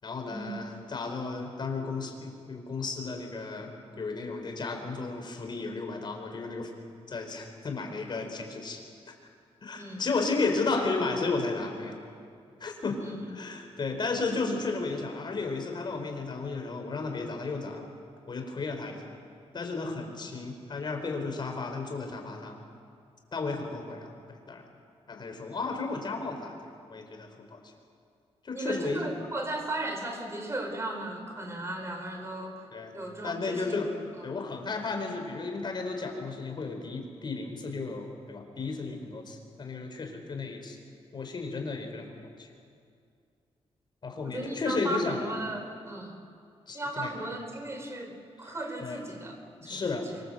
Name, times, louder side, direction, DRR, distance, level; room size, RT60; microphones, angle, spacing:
voice 1, 0.0-6.7 7.1-8.8 9.6-12.0 12.6-13.0 13.3-17.8 18.3-19.1 19.5-22.6 23.3-24.6 25.1-27.6 28.4-29.1 32.7-32.9 33.2-33.9 34.2-40.8 41.1-42.5 44.0-45.2 46.7-47.1 48.4-48.5 48.8-49.0 49.6-50.1, left 3 dB, 40° left, 3 dB, 4.4 m, -33 dB
voice 2, 13.0-13.3 28.5-32.7 32.9-33.8 34.2-34.4 44.2-46.2 46.7-49.4 49.6-50.2, right 1 dB, 25° right, 4 dB, 4.5 m, -36 dB
25.0 x 24.5 x 7.9 m, 2.3 s
wide cardioid pair, 130°, 11 cm